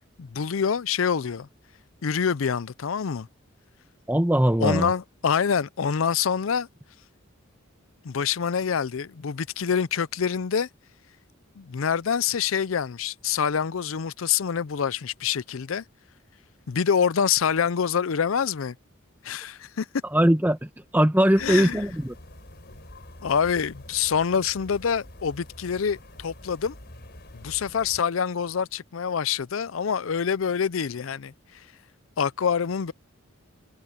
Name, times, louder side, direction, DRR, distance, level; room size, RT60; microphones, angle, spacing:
voice 1, 0.2-1.5 2.0-3.3 4.6-6.7 8.0-10.7 11.6-15.8 16.7-18.8 19.2-19.9 21.4-21.8 23.2-26.7 27.3-31.3 32.2-32.9, left 7 dB, 75° left, 0.5 m, -26 dB
voice 2, 4.1-4.9 20.1-22.1, equal, 10° right, 1.1 m, -21 dB
sound 1, 21.4-28.0, left 1 dB, 55° left, 5.1 m, -46 dB
head